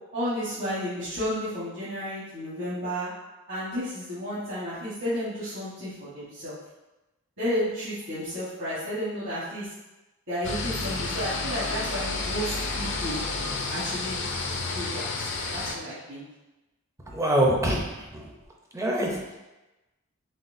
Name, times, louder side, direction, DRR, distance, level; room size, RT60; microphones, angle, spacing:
voice 1, 0.1-3.1 3.5-6.5 7.4-9.7 10.3-13.2 13.7-14.3 14.7-16.2, equal, 55° right, -11 dB, 1.2 m, -32 dB
sound 1, 10.4-15.8, left 3 dB, 55° left, 0.4 m, -30 dB
voice 2, 17.1-18.3 18.7-19.2, right 1 dB, 15° right, -1 dB, 0.5 m, -25 dB
4.1 x 3.6 x 2.6 m, 1.0 s
head